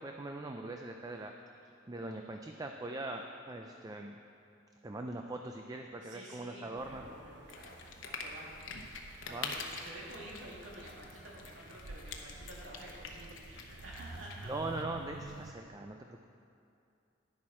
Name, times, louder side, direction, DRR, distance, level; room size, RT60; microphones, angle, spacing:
voice 1, 0.0-1.6 1.9-4.2 4.8-7.1 9.3-9.5 14.4-16.3, right 2 dB, 20° right, 3 dB, 0.4 m, -41 dB
voice 2, 6.0-8.5 8.8-14.5, right 1 dB, 90° right, -5 dB, 2.6 m, -50 dB
sound 1, 6.8-15.5, right 2 dB, 60° right, 0.6 m, -51 dB
sound 2, 7.5-14.8, left 4 dB, 75° left, 1.0 m, -46 dB
10.5 x 10.5 x 4.3 m, 2.6 s
head